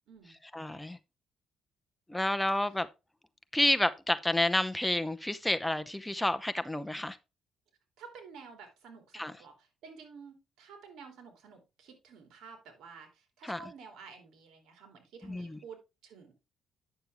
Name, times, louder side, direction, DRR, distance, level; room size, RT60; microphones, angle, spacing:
voice 1, 0.5-1.0 2.1-2.9 3.5-7.2 9.1-9.3 13.4-13.6 15.2-15.6, left 1 dB, 5° left, 0.7 m, -30 dB
voice 2, 8.0-9.5 9.8-16.3, right 5 dB, 75° right, 2.9 m, -51 dB
9.4 x 6.7 x 3.4 m
cardioid pair, 110°, 0 cm